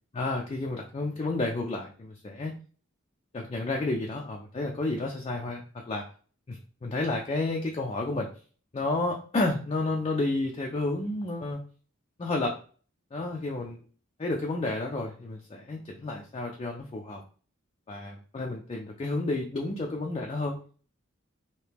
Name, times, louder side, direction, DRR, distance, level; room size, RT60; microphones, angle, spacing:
voice 1, 0.1-2.5 3.3-6.0 6.5-8.3 8.7-11.6 12.2-12.5 13.1-13.8 14.2-17.2 17.9-20.6, left 2 dB, 30° left, 0 dB, 0.4 m, -31 dB
2.9 x 2.8 x 3.4 m, 0.42 s
head